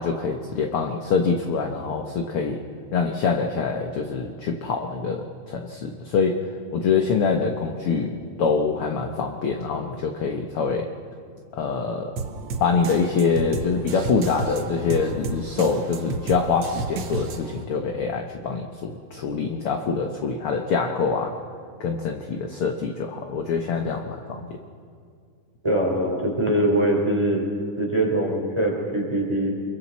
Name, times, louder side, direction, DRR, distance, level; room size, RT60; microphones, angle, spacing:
voice 1, 0.0-2.6 2.9-6.4 6.7-10.9 11.5-12.1 12.6-21.3 21.8-24.6, left 5 dB, 65° left, 3 dB, 1.5 m, -25 dB
sound 1, 12.2-17.6, right 4 dB, 80° right, 1.0 m, -32 dB
voice 2, 25.6-27.4 27.8-29.5, right 1 dB, 10° right, -1 dB, 3.5 m, -22 dB
28.5 x 22.5 x 4.2 m, 2.3 s
omnidirectional pair, 3.6 m